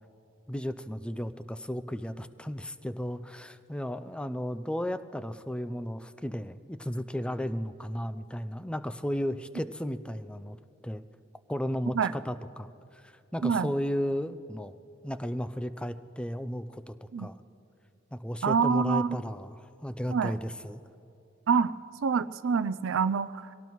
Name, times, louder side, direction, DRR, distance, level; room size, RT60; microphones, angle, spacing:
voice 1, 0.5-11.0 11.5-14.8 15.0-17.4 18.1-20.8, equal, 5° left, 12 dB, 0.4 m, -34 dB
voice 2, 18.4-19.2 20.1-20.4 21.5-21.7 22.0-23.4, right 5 dB, 85° right, 15 dB, 0.4 m, -26 dB
24.5 x 17.5 x 3.1 m, 2.7 s
head